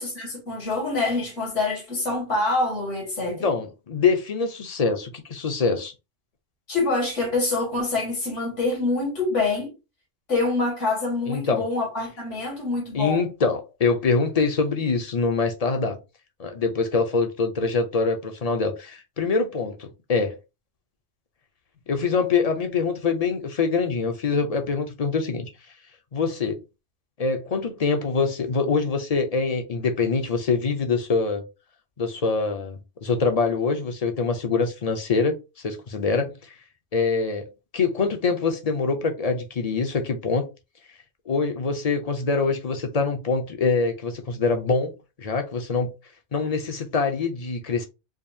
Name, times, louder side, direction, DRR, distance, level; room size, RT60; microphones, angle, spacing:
voice 1, 0.0-3.5 6.7-9.7 10.3-13.2, left 3 dB, 80° left, 2.1 m, -26 dB
voice 2, 3.3-5.9 11.3-11.6 12.9-16.0 16.4-20.4 21.9-25.5 26.1-26.6 27.2-31.4 32.0-35.4 35.6-36.5 36.9-37.5 37.7-40.4 41.3-45.9 46.3-47.8, left 4 dB, 40° left, 0.6 m, -24 dB
4.9 x 2.4 x 2.7 m
omnidirectional pair, 1.2 m